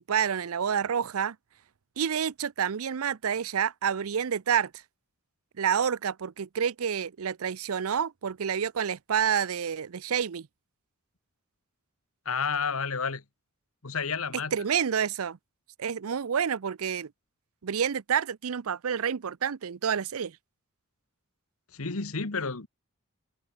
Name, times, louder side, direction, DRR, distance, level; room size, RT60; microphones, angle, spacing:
voice 1, 0.0-1.4 2.0-4.7 5.6-10.5 14.5-15.4 15.8-17.1 17.6-20.4, right 7 dB, 75° right, 0.5 m, -28 dB
voice 2, 12.2-13.2 13.8-14.5 21.7-22.7, left 5 dB, 70° left, 1.5 m, -30 dB
head